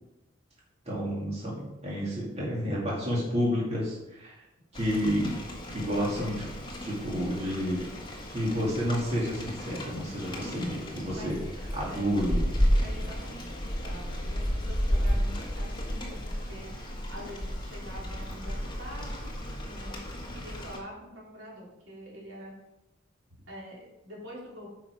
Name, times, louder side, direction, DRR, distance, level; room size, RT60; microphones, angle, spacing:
voice 1, 0.9-4.4 4.7-5.4 5.7-6.5 6.8-7.8 8.3-11.4 11.7-12.5, equal, 35° right, -5 dB, 2.3 m, -30 dB
Rain, 4.7-20.8, equal, 25° left, 1.7 m, -33 dB
voice 2, 11.8-12.2 12.8-22.5 23.5-24.7, equal, 80° right, -4 dB, 3.5 m, -45 dB
9.1 x 5.9 x 4.8 m, 0.95 s
head